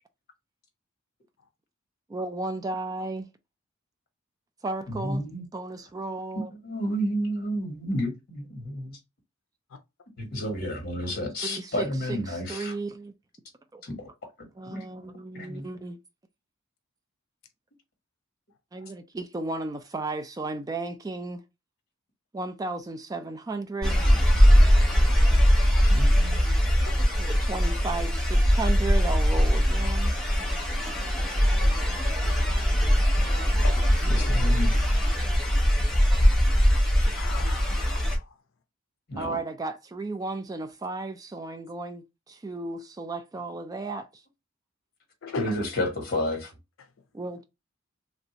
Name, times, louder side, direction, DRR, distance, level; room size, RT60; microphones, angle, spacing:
voice 1, 2.1-3.3 4.6-5.2 5.5-6.5 11.0-11.2 11.4-13.1 13.7-13.8 14.6-16.0 18.7-21.4 22.3-24.0 27.2-30.2 39.2-44.2 47.1-47.4, right 3 dB, 20° right, 0.3 m, -34 dB
voice 2, 4.9-5.4 6.6-9.0 10.3-12.7 13.8-14.1 14.7-14.8 15.3-15.7 24.6-24.9 25.8-26.5 34.1-34.9 39.1-39.4 45.4-46.5, equal, 50° left, 1.2 m, -31 dB
sound 1, 23.8-38.2, equal, 5° left, 0.9 m, -21 dB
voice 3, 33.2-34.4 37.1-38.3 45.2-45.5, left 4 dB, 80° left, 0.5 m, -39 dB
3.2 x 2.6 x 2.8 m
head